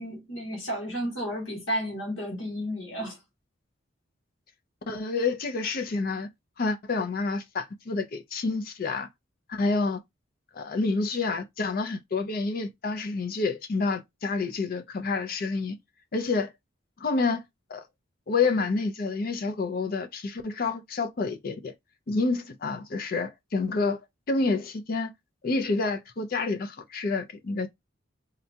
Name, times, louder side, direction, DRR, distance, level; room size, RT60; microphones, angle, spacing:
voice 1, 0.0-3.2, equal, 80° left, 1.3 m, -32 dB
voice 2, 4.9-6.3 6.6-9.1 9.5-10.0 10.5-15.8 16.1-16.5 17.0-17.4 17.7-17.8 18.3-21.7 22.1-24.0 24.3-25.1 25.4-27.7, left 3 dB, 45° left, 0.4 m, -28 dB
3.9 x 2.2 x 2.7 m
head